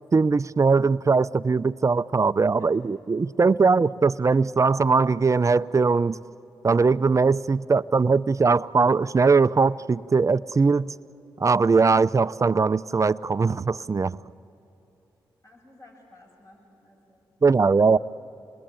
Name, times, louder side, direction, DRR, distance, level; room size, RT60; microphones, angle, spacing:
voice 1, 0.1-6.2 6.6-10.9 11.4-14.2 17.4-18.0, right 4 dB, 35° right, 0.5 m, -20 dB
voice 2, 2.4-2.7 15.4-17.3, left 1 dB, 40° left, 6.9 m, -54 dB
27.5 x 21.0 x 9.0 m
supercardioid pair, 50°, 9 cm